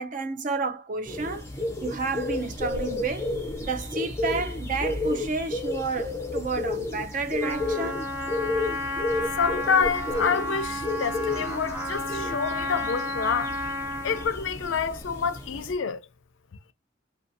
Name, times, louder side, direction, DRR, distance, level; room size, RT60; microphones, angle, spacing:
voice 1, 0.0-1.5 1.8-3.3 3.6-8.0, right 3 dB, 40° right, 0.4 m, -30 dB
sound 1, 1.1-15.7, left 2 dB, 15° left, 0.4 m, -32 dB
Trumpet, 7.4-14.3, left 1 dB, 15° right, 1.0 m, -32 dB
voice 2, 9.4-13.6 14.0-16.0, left 6 dB, 80° left, 0.4 m, -27 dB
2.6 x 2.3 x 2.6 m
head